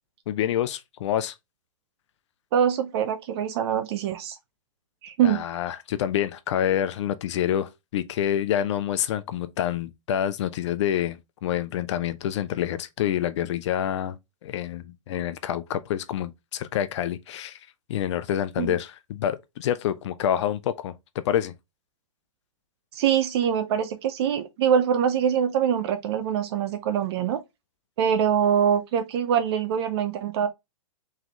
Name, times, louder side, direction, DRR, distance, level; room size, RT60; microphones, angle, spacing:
voice 1, 0.3-1.3 5.2-17.6 17.9-20.9 21.2-21.5, left 10 dB, 55° left, 0.6 m, -27 dB
voice 2, 2.5-4.4 5.0-5.4 18.6-18.7 22.9-27.4 28.0-30.5, right 8 dB, 50° right, 0.6 m, -24 dB
3.6 x 3.4 x 3.1 m
hypercardioid pair, 125°, 18 cm